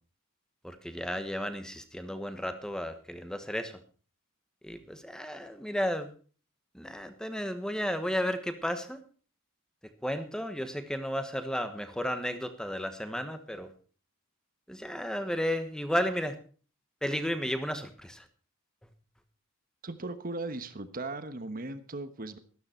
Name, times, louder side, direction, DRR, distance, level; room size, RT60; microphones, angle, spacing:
voice 1, 0.6-3.8 4.6-6.1 6.7-9.0 10.0-13.7 14.7-16.4 17.0-18.3, equal, 5° left, 9 dB, 1.2 m, -33 dB
voice 2, 19.8-22.4, right 2 dB, 45° right, 11 dB, 1.2 m, -37 dB
13.0 x 13.0 x 4.4 m, 0.40 s
head